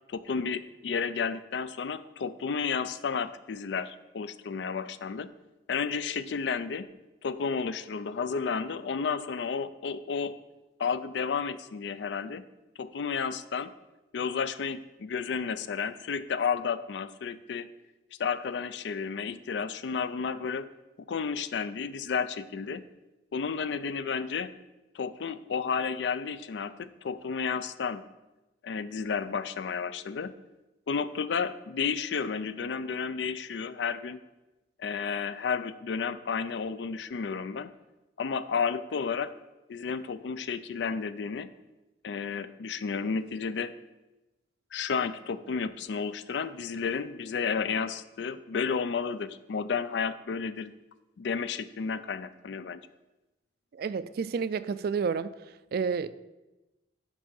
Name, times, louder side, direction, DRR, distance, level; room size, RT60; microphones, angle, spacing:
voice 1, 0.1-5.3 5.7-6.9 7.2-10.3 10.8-12.4 12.8-13.7 14.1-17.7 18.2-20.7 21.1-22.8 23.3-24.5 24.9-28.0 28.6-30.3 30.9-34.2 34.8-37.7 38.2-39.3 39.7-41.5 42.0-43.7 44.7-50.7 51.2-52.8, left 5 dB, 70° left, 14 dB, 0.4 m, -32 dB
voice 2, 53.7-55.3 55.7-56.1, right 5 dB, 55° right, 15 dB, 0.3 m, -30 dB
6.0 x 5.5 x 6.9 m, 1.0 s
head